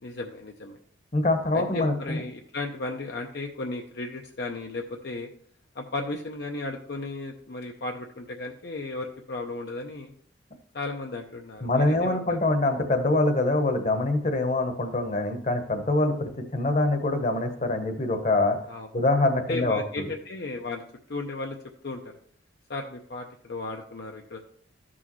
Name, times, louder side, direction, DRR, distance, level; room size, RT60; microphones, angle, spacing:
voice 1, 0.0-0.8 1.5-5.3 5.7-10.1 10.7-12.4 18.7-18.9 19.5-20.8 21.1-21.6 21.8-22.1 22.7-24.4, left 2 dB, 55° left, 2 dB, 0.6 m, -35 dB
voice 2, 1.1-2.2 11.6-18.6 18.9-20.1, left 2 dB, 40° left, 6 dB, 1.0 m, -24 dB
13.5 x 6.2 x 3.1 m, 0.63 s
head